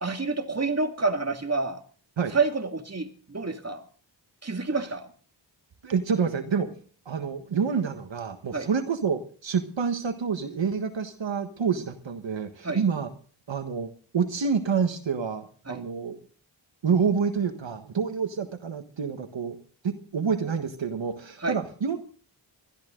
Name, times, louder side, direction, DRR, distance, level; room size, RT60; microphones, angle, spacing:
voice 1, 0.0-1.8 2.3-3.8 4.4-5.1 8.5-8.7 12.6-12.8 15.7-15.8 21.4-21.6, right 3 dB, 35° right, 5 dB, 2.3 m, -28 dB
voice 2, 5.8-6.7 7.0-13.1 13.5-16.2 16.8-19.6 19.8-22.0, right 6 dB, 75° right, 7 dB, 1.5 m, -28 dB
20.5 x 13.5 x 3.9 m, 0.42 s
cardioid pair, 50°, 45 cm